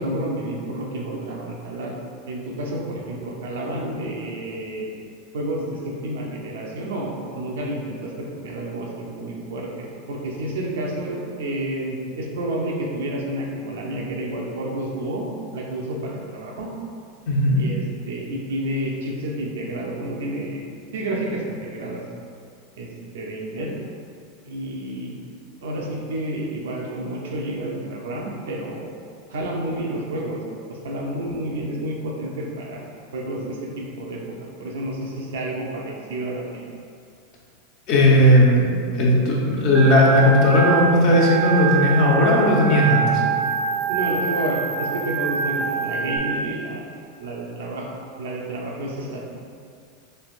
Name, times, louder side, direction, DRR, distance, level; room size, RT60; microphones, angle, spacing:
voice 1, 0.0-1.9 2.3-4.9 5.3-15.3 15.5-16.7 17.5-20.6 20.9-22.0 22.8-23.7 24.5-25.3 25.6-28.9 29.3-30.4 30.7-32.8 33.1-36.7 43.9-47.9 48.2-49.2, right 1 dB, 85° right, -2 dB, 0.5 m, -30 dB
voice 2, 17.3-17.6 37.9-38.7 38.9-43.2, left 1 dB, 50° left, -3 dB, 0.7 m, -16 dB
Organ, 39.7-46.2, right 7 dB, 35° right, 0.4 m, -25 dB
3.3 x 2.8 x 2.4 m, 2.3 s
supercardioid pair, 120°, 0 cm